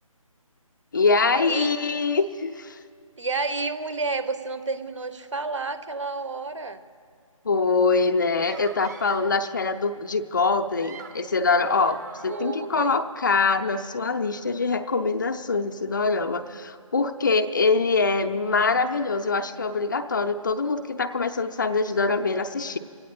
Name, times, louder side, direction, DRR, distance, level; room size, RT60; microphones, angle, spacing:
voice 1, 0.9-2.8 7.4-22.8, left 4 dB, 35° left, 7 dB, 0.6 m, -24 dB
voice 2, 3.2-6.8 12.3-13.0, right 3 dB, 55° right, 11 dB, 1.1 m, -30 dB
sound 1, 8.4-9.4 10.6-13.0, right 4 dB, 30° right, 1.0 m, -44 dB
28.0 x 17.0 x 2.3 m, 2.1 s
figure-of-eight pair, 155°, 18 cm